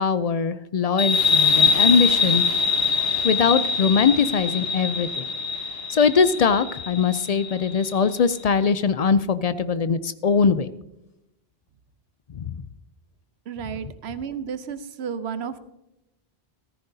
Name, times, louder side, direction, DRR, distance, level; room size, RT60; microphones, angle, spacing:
voice 1, 0.0-2.4 3.2-5.2 5.9-10.7 12.3-12.6, left 5 dB, 55° left, 14 dB, 0.4 m, -21 dB
sound 1, 1.0-8.2, left 5 dB, 70° left, 1.4 m, -23 dB
voice 2, 13.5-15.6, right 7 dB, 90° right, 12 dB, 1.0 m, -32 dB
14.5 x 14.0 x 2.7 m, 0.89 s
omnidirectional pair, 1.1 m